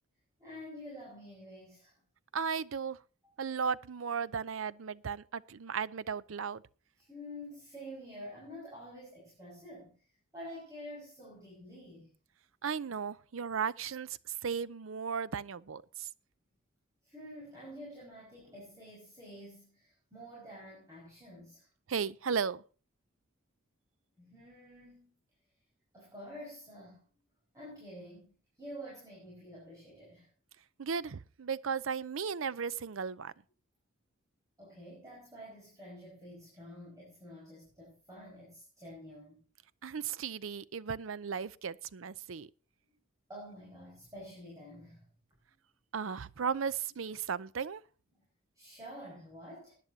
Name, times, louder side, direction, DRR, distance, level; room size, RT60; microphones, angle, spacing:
voice 1, 0.4-1.9 3.2-3.3 7.0-9.9 10.3-12.1 17.0-21.7 24.2-25.1 25.9-27.0 27.5-28.3 28.6-30.3 34.6-39.4 43.3-45.0 48.6-49.7, equal, 15° right, 5.5 m, -48 dB
voice 2, 2.3-3.0 3.4-6.6 12.6-14.2 14.4-16.1 21.9-22.6 30.8-33.3 39.8-42.5 45.9-47.8, right 6 dB, 85° right, 0.6 m, -35 dB
20.0 x 10.5 x 2.8 m
head